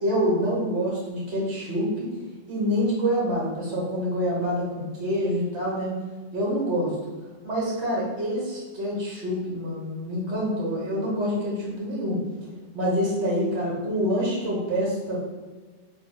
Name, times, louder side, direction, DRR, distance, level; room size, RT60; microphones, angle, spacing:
voice 1, 0.0-2.1 2.5-6.0 6.3-6.9 7.4-12.2 12.7-15.2, equal, 65° right, -5 dB, 1.4 m, -26 dB
3.3 x 2.3 x 3.9 m, 1.3 s
omnidirectional pair, 1.2 m